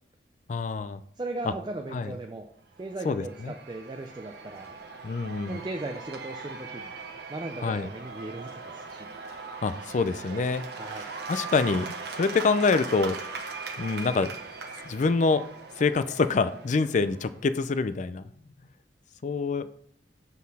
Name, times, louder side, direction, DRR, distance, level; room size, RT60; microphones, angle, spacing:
voice 1, 0.5-1.0 1.4-1.5 1.9-2.1 3.0-3.5 5.0-5.6 7.6-7.9 9.6-10.6 11.3-13.2 13.8-14.3 14.9-15.4 15.8-18.2 19.2-19.7, left 4 dB, 40° left, 13 dB, 0.4 m, -26 dB
voice 2, 1.2-2.5 2.8-4.8 5.4-6.9 7.3-9.1 10.7-11.1, right 2 dB, 25° right, 4 dB, 0.4 m, -37 dB
Cheering / Applause / Crowd, 2.8-17.5, right 4 dB, 60° right, 0.9 m, -40 dB
7.4 x 4.1 x 4.1 m, 0.63 s
head